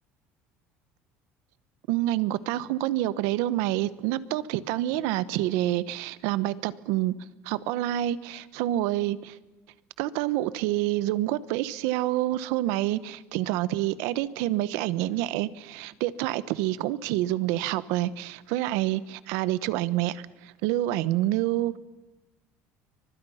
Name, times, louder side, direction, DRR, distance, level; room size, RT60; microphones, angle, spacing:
voice 1, 1.9-7.1 7.4-9.4 10.0-21.8, right 14 dB, 75° right, 16 dB, 1.1 m, -27 dB
30.0 x 24.5 x 5.8 m, 1.1 s
cardioid pair, 170°, 5 cm